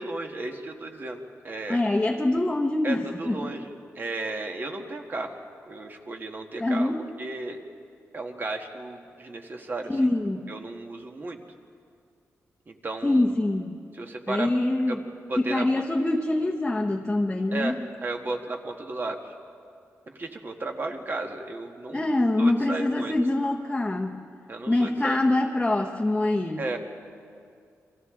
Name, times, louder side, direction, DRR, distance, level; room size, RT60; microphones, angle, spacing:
voice 1, 0.0-1.8 2.8-5.4 5.7-6.9 7.2-7.6 8.1-10.0 10.5-11.4 12.7-13.2 13.9-14.5 14.9-15.0 15.3-15.8 17.5-19.3 20.1-22.0 22.4-23.1 24.5-25.2 26.6-26.8, right 2 dB, 40° right, 4 dB, 1.7 m, -34 dB
voice 2, 1.7-3.4 6.6-7.0 9.9-10.5 13.0-13.7 14.3-15.0 15.4-17.8 21.9-24.1 24.7-26.7, left 2 dB, 15° left, 0 dB, 1.0 m, -24 dB
29.0 x 24.0 x 3.8 m, 2.4 s
wide cardioid pair, 125°, 5 cm